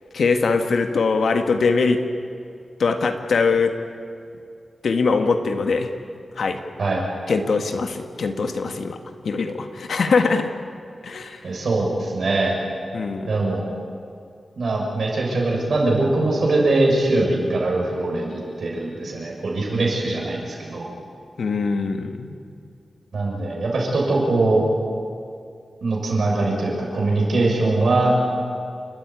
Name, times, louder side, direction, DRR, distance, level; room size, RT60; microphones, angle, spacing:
voice 1, 0.1-2.0 2.8-3.7 4.8-5.9 6.4-6.6 7.3-9.0 9.2-10.5 11.0-11.4 12.9-13.4 21.4-22.3, left 4 dB, 75° left, 7 dB, 1.8 m, -22 dB
voice 2, 11.4-12.6 13.3-13.6 14.6-20.9 23.1-24.6 25.8-28.1, right 2 dB, 65° right, -1 dB, 6.8 m, -22 dB
29.0 x 13.5 x 9.7 m, 2.3 s
wide cardioid pair, 155°, 0 cm